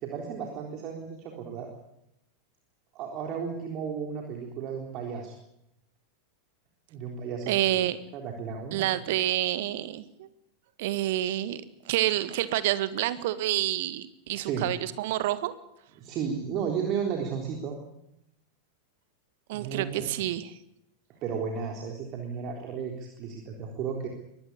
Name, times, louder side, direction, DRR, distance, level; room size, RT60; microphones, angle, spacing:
voice 1, 0.0-1.7 2.9-5.3 6.9-7.7 8.1-8.9 14.3-14.7 16.0-17.8 19.5-20.1 21.2-24.1, right 6 dB, 35° right, 2 dB, 3.7 m, -34 dB
voice 2, 7.5-8.0 8.7-10.3 10.8-15.5 19.5-20.5, right 14 dB, 50° right, 14 dB, 1.7 m, -28 dB
23.0 x 19.0 x 8.4 m, 0.83 s
figure-of-eight pair, 90°, 0 cm